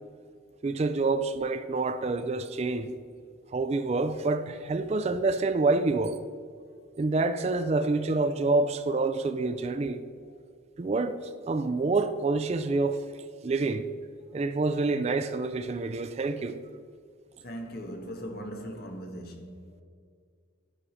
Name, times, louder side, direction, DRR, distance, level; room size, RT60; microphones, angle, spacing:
voice 1, 0.6-2.9 3.5-6.2 7.0-10.0 10.8-13.1 13.4-13.9 14.3-16.6, right 3 dB, 30° right, 0.3 m, -27 dB
voice 2, 17.4-19.8, equal, 50° left, 1.2 m, -40 dB
11.0 x 4.9 x 6.1 m
head